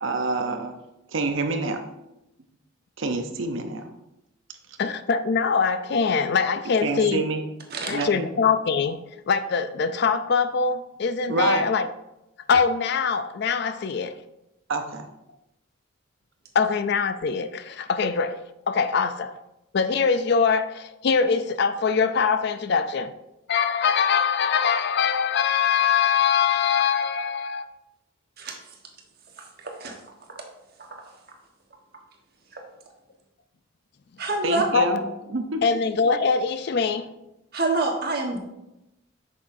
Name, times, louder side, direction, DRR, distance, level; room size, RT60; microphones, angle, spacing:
voice 1, 0.0-0.8 1.1-1.8 3.0-3.9 6.8-7.4 7.9-8.3 11.3-11.7 14.7-15.1 34.4-35.0 35.3-35.6, right 3 dB, 65° right, 0.7 m, -27 dB
voice 2, 4.8-7.3 7.9-9.0 9.3-11.9 12.5-14.1 16.5-19.4 19.7-23.1 23.5-27.7 34.7-35.1 35.6-37.1, left 6 dB, 50° left, 0.4 m, -23 dB
voice 3, 7.7-8.0 28.4-28.6 29.4-30.0 34.2-34.6 37.5-38.4, right 2 dB, 45° right, 1.3 m, -26 dB
8.6 x 6.2 x 2.7 m
head